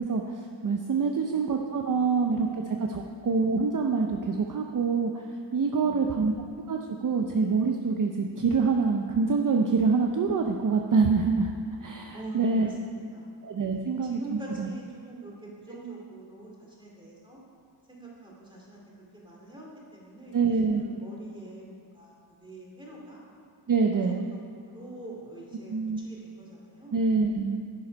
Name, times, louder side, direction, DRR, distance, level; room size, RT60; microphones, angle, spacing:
voice 1, 0.0-2.6 2.9-5.2 5.5-6.3 6.7-11.5 11.8-12.7 13.4-14.2 14.6-14.7 20.3-20.8 23.7-24.2 25.7-26.0 26.9-27.6, right 4 dB, 45° right, 3 dB, 0.6 m, -25 dB
voice 2, 1.0-1.6 1.9-3.1 5.7-6.4 12.1-17.4 17.9-18.8 19.1-22.1 22.4-23.2 24.0-26.9, right 2 dB, 10° right, -4 dB, 2.4 m, -45 dB
11.0 x 7.0 x 5.2 m, 2.2 s
wide cardioid pair, 135°, 43 cm